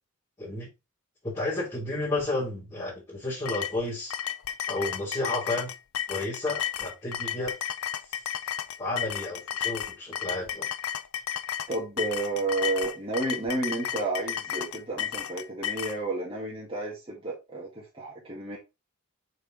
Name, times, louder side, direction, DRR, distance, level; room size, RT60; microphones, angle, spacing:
voice 1, 0.4-0.7 1.2-4.2 4.7-5.7 6.1-7.6 8.0-8.2 8.8-10.7, left 2 dB, 15° left, 3.2 m, -32 dB
sound 1, 3.5-16.0, left 10 dB, 75° left, 0.5 m, -33 dB
voice 2, 11.7-18.6, right 2 dB, 25° right, 1.9 m, -31 dB
6.5 x 4.7 x 3.8 m
head